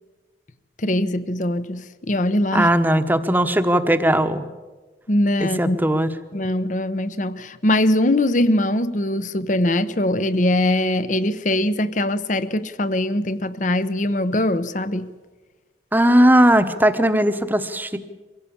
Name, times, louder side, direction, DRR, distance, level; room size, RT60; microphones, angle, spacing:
voice 1, 0.8-2.7 5.1-5.8 6.3-15.1, left 1 dB, 45° left, 0.9 m, -22 dB
voice 2, 2.5-4.4 5.4-6.1 15.9-18.0, right 1 dB, 10° right, 1.1 m, -18 dB
23.5 x 16.5 x 8.7 m
head